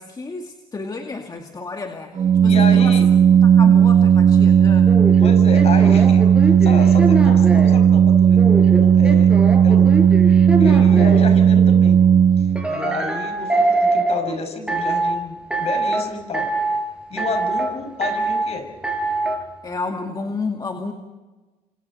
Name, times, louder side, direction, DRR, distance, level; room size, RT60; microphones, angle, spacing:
voice 1, 0.0-3.0 3.4-4.9 19.6-20.9, left 3 dB, 25° left, 3 dB, 2.3 m, -31 dB
Organ, 2.1-12.9, right 8 dB, 40° right, 1.5 m, -14 dB
voice 2, 2.4-3.1 5.2-9.3 9.6-12.0 12.4-16.5 17.1-18.7, left 3 dB, 45° left, 6 dB, 6.4 m, -30 dB
sound 1, 4.9-7.8 8.4-11.3 12.6-14.2 14.7-15.1 15.5-16.0 16.3-16.8 17.2-17.7 18.0-18.5 18.8-19.4, right 2 dB, 5° right, 5.6 m, -23 dB
29.5 x 26.0 x 4.3 m, 1.2 s
cardioid pair, 100°, 15 cm